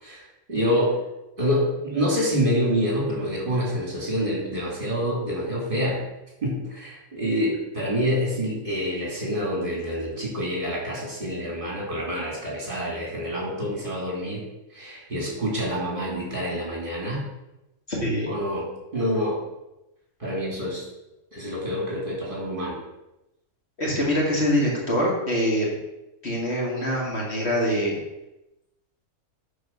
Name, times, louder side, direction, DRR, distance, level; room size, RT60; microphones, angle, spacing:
voice 1, 0.5-1.0 1.4-6.0 6.4-14.4 14.7-17.2 18.2-18.7 18.9-19.4 20.2-20.9 21.3-22.8, equal, 35° right, -4 dB, 3.4 m, -27 dB
voice 2, 17.9-18.3 23.8-25.7 26.2-28.0, equal, 50° left, -3 dB, 2.5 m, -24 dB
11.0 x 4.8 x 5.6 m, 0.94 s
omnidirectional pair, 1.5 m